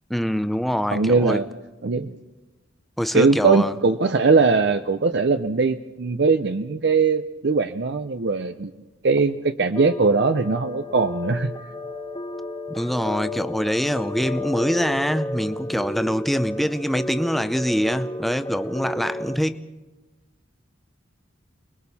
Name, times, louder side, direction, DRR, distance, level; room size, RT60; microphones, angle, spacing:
voice 1, 0.1-1.4 3.0-3.7 12.7-19.7, equal, ahead, 10 dB, 0.5 m, -24 dB
voice 2, 0.9-1.4 1.8-2.1 3.1-8.7 9.0-11.6, right 4 dB, 55° right, 9 dB, 0.6 m, -20 dB
sound 1, 9.8-19.4, left 1 dB, 20° left, 1.0 m, -32 dB
29.5 x 21.0 x 4.2 m, 1.2 s
head